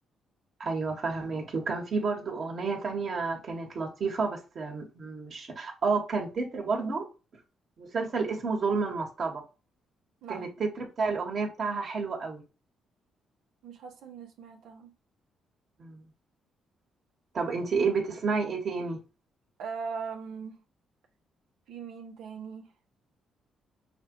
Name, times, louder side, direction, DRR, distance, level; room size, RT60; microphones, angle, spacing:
voice 1, 0.6-7.1 7.8-9.4 10.3-12.4 15.8-16.0 17.3-19.0, right 4 dB, 50° right, 1.7 m, -30 dB
voice 2, 10.2-10.5 13.6-14.9 17.4-17.6 19.6-20.6 21.7-22.7, right 5 dB, 80° right, 1.3 m, -40 dB
6.4 x 2.6 x 3.1 m
cardioid pair, 90°, 0 cm